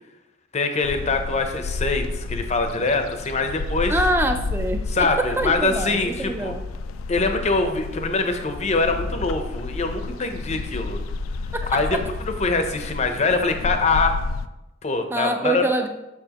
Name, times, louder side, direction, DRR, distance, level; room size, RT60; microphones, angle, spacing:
voice 1, 0.5-4.0 4.9-6.5 7.1-11.0 11.7-14.2 14.8-15.6, left 3 dB, 35° left, 6 dB, 0.6 m, -24 dB
sound 1, 0.8-14.5, left 3 dB, 85° left, 0.4 m, -31 dB
voice 2, 3.9-5.1 5.4-6.6 11.6-11.7 15.1-15.9, right 1 dB, 10° right, 6 dB, 0.4 m, -25 dB
7.0 x 5.9 x 2.9 m, 0.96 s
head